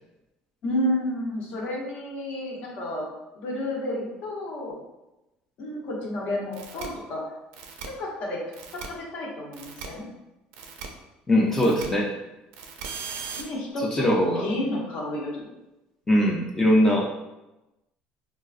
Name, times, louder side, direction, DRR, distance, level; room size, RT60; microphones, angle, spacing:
voice 1, 0.6-3.1 3.3-4.8 5.6-7.2 8.0-8.4 8.8-10.1 13.4-15.5, left 1 dB, 55° left, -2 dB, 0.9 m, -31 dB
sound 1, 6.5-6.9 7.5-7.9 8.5-8.9 9.5-9.9 10.5-10.9 11.5-11.9 12.5-13.4, right 6 dB, 90° right, 0.4 m, -38 dB
voice 2, 11.3-12.1 13.9-14.5 16.1-17.1, equal, 10° left, -2 dB, 0.4 m, -21 dB
3.7 x 2.3 x 2.4 m, 0.97 s
cardioid pair, 155°, 3 cm